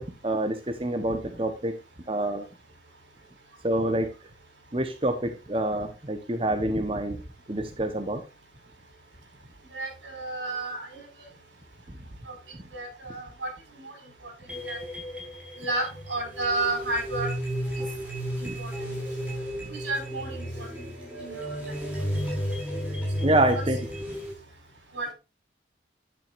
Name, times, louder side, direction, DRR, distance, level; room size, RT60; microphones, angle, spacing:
voice 1, 0.0-1.7 2.1-2.5 3.6-4.1 4.7-7.2 7.5-8.2 18.4-18.6 23.2-23.9, right 1 dB, 30° right, 6 dB, 1.0 m, -27 dB
voice 2, 9.7-11.3 12.2-12.3 12.7-13.9 14.2-14.3 14.6-14.8 15.6-17.3 17.8-17.9 18.4-19.0 19.7-20.8 21.2-21.8 23.2-23.6 24.9-25.1, right 2 dB, 85° right, 3 dB, 6.0 m, -32 dB
sound 1, 14.5-24.3, equal, 5° right, 4.8 m, -33 dB
10.5 x 9.1 x 2.6 m, 0.28 s
head